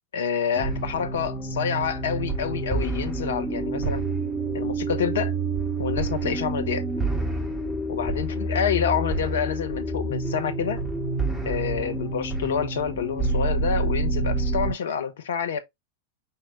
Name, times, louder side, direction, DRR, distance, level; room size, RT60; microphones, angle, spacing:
voice 1, 0.1-4.0 4.5-5.3 5.8-6.8 7.9-10.8 11.4-15.6, left 7 dB, 60° left, 0.7 m, -28 dB
sound 1, 0.5-14.7, right 3 dB, ahead, 1.7 m, -28 dB
5.7 x 2.9 x 3.0 m
figure-of-eight pair, 90°, 0 cm